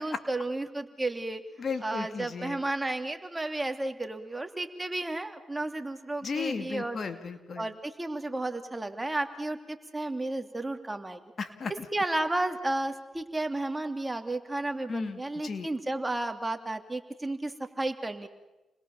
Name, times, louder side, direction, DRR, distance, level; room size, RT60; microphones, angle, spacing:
voice 1, 0.0-1.4 1.8-7.0 7.6-11.2 11.9-18.3, right 2 dB, 15° right, 6 dB, 2.9 m, -32 dB
voice 2, 1.6-2.6 6.2-7.7 11.4-11.9 14.9-15.7, left 5 dB, 55° left, 9 dB, 2.4 m, -35 dB
29.5 x 21.5 x 7.2 m, 1.0 s
cardioid pair, 60°, 0 cm